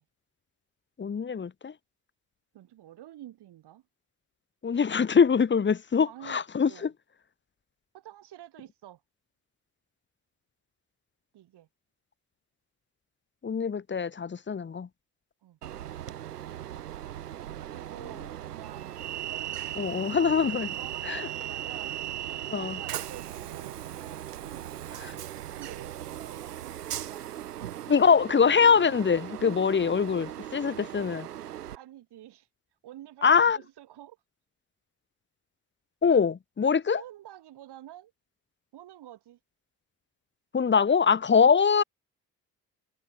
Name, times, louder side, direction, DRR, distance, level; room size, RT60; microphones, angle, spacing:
voice 1, 1.0-1.7 4.6-6.9 13.4-14.9 19.7-20.7 21.1-21.2 22.5-22.8 25.0-25.1 27.9-31.3 33.2-33.6 36.0-37.0 40.5-41.8, left 6 dB, 25° left, 1.1 m, -23 dB
voice 2, 2.5-3.8 6.0-6.9 7.9-9.0 11.3-11.7 15.4-15.6 17.6-19.1 20.7-22.0 22.6-25.1 25.5-27.5 31.7-32.5 32.8-34.2 36.8-38.1 38.7-39.4 41.4-41.5, right 13 dB, 60° right, 6.3 m, -49 dB
Train, 15.6-31.8, right 11 dB, 90° right, 1.8 m, -38 dB
hypercardioid pair, 50°, 46 cm